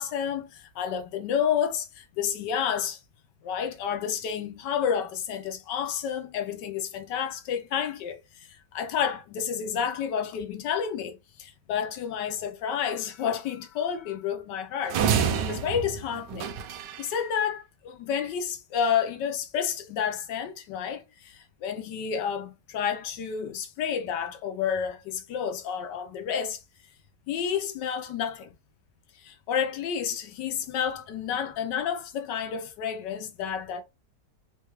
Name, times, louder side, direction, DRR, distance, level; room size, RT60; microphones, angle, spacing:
voice 1, 0.0-3.0 3.4-16.5 17.0-26.6 27.3-28.5 29.2-33.8, left 8 dB, 85° left, 1.3 m, -30 dB
sound 1, 14.9-17.1, right 7 dB, 85° right, 1.3 m, -28 dB
3.8 x 2.3 x 2.9 m
omnidirectional pair, 1.8 m